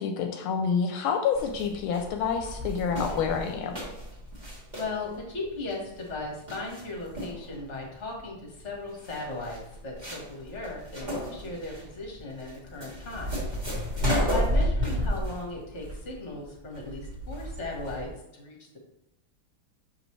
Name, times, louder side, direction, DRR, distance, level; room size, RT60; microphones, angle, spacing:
voice 1, 0.0-3.8 14.2-14.4, left 6 dB, 80° left, 5 dB, 1.4 m, -28 dB
sound 1, 1.3-18.1, equal, 20° right, 1.9 m, -32 dB
voice 2, 4.8-13.3 14.2-18.6, left 2 dB, 35° left, 0 dB, 1.6 m, -37 dB
6.0 x 5.2 x 3.2 m, 0.84 s
omnidirectional pair, 2.3 m